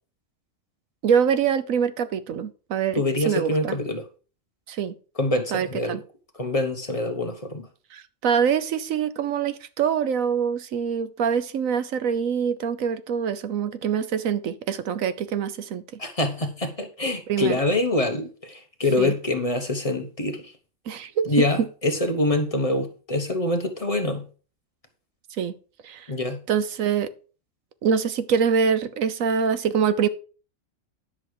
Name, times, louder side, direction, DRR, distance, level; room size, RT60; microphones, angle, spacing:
voice 1, 1.0-3.8 4.7-4.9 5.5-6.0 7.9-15.8 17.3-17.6 19.0-19.1 20.9-21.4 25.4-25.5 25.8-26.1 26.5-27.1 27.8-30.1, right 7 dB, 85° right, 1.2 m, -24 dB
voice 2, 3.0-4.1 5.2-6.0 6.4-7.7 16.0-20.5 21.3-24.3 26.1-26.4, left 2 dB, 30° left, 1.1 m, -25 dB
10.0 x 6.3 x 4.8 m
omnidirectional pair, 1.4 m